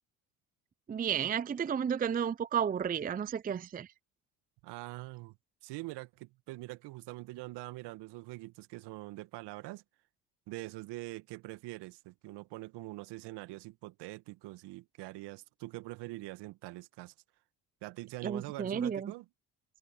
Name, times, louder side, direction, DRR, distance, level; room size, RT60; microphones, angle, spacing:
voice 1, 0.9-3.9 18.2-19.1, right 8 dB, 20° right, 0.6 m, -32 dB
voice 2, 4.6-5.3 5.6-9.8 10.5-17.1 17.8-19.3, right 20 dB, 65° right, 1.8 m, -44 dB
hypercardioid pair, 60°, 43 cm